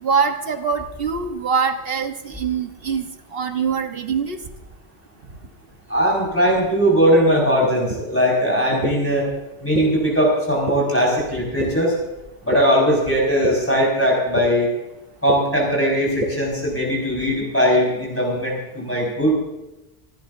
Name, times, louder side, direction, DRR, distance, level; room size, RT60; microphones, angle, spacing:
voice 1, 0.0-4.4, right 6 dB, 65° right, 5 dB, 1.4 m, -23 dB
voice 2, 5.9-9.3 9.6-11.9 12.4-14.7 15.2-19.4, equal, 10° left, -3 dB, 5.5 m, -19 dB
sound 1, 7.9-8.0 8.8-8.9 9.7-9.8 10.7-10.8 11.6-11.7 12.5-12.6 13.4-13.5 14.4-14.5 15.3-15.4 16.2-16.3, right 1 dB, 45° right, 3.1 m, -23 dB
29.5 x 12.0 x 2.7 m, 0.99 s
omnidirectional pair, 1.1 m